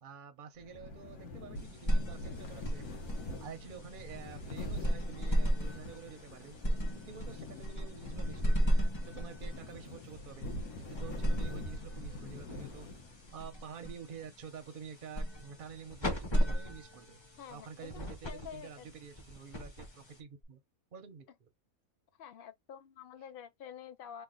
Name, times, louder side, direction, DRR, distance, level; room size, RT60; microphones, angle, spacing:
voice 1, 0.0-3.1 3.4-6.5 6.9-10.5 10.8-12.9 13.3-17.2 17.5-20.6 20.9-21.5, right 7 dB, 55° right, 0.6 m, -49 dB
sound 1, 0.6-13.3, left 1 dB, 80° left, 1.4 m, -44 dB
sound 2, 1.5-20.4, equal, 25° left, 0.7 m, -36 dB
voice 2, 17.4-18.9 22.2-24.2, left 8 dB, 55° left, 0.6 m, -48 dB
3.2 x 2.2 x 3.7 m
omnidirectional pair, 1.5 m